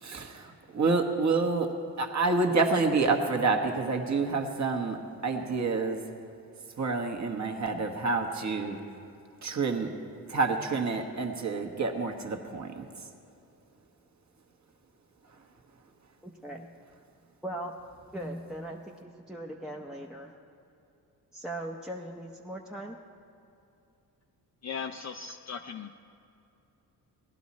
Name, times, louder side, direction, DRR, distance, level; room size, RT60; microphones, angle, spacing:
voice 1, 0.0-1.7 2.0-6.0 6.8-8.8 9.4-9.9 10.3-12.8, right 3 dB, 45° right, 4 dB, 1.3 m, -28 dB
voice 2, 16.2-16.7 17.4-17.7 18.1-20.3 21.3-23.0, right 1 dB, ahead, 0 dB, 0.7 m, -39 dB
voice 3, 24.6-25.9, left 6 dB, 45° left, 4 dB, 0.5 m, -38 dB
17.5 x 11.5 x 4.2 m, 2.7 s
cardioid pair, 90°, 39 cm